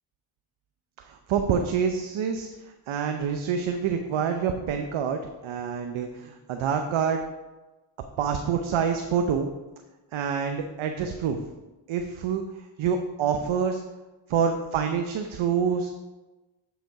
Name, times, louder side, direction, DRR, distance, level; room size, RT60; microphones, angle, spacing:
voice 1, 1.0-2.5 2.9-7.2 8.2-9.5 10.1-11.4 11.9-13.8 14.3-15.9, right 7 dB, 75° right, 5 dB, 0.8 m, -27 dB
9.0 x 5.2 x 4.7 m, 1.1 s
cardioid pair, 55°, 48 cm